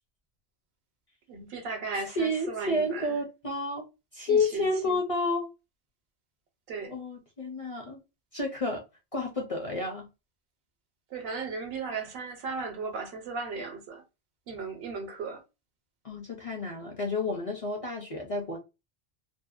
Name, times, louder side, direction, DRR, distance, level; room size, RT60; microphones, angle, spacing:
voice 1, 1.3-3.2 4.3-5.0 6.7-6.9 11.1-14.0 14.5-15.4, right 4 dB, 70° right, 0.9 m, -36 dB
voice 2, 2.2-3.8 4.1-5.5 6.9-8.0 8.3-8.8 9.1-10.1 16.0-18.6, left 2 dB, 45° left, 0.5 m, -30 dB
2.6 x 2.1 x 2.3 m
omnidirectional pair, 1.1 m